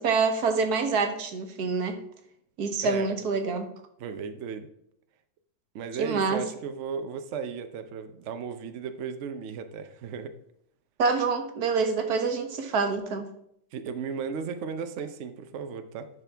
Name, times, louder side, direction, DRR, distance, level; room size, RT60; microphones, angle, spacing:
voice 1, 0.0-2.0 2.6-3.7 6.0-6.4 11.0-13.3, right 4 dB, 60° right, 6 dB, 1.4 m, -26 dB
voice 2, 4.0-4.7 5.7-10.3 13.7-16.1, right 6 dB, 85° right, 8 dB, 0.6 m, -35 dB
10.5 x 6.0 x 3.4 m, 0.72 s
omnidirectional pair, 2.1 m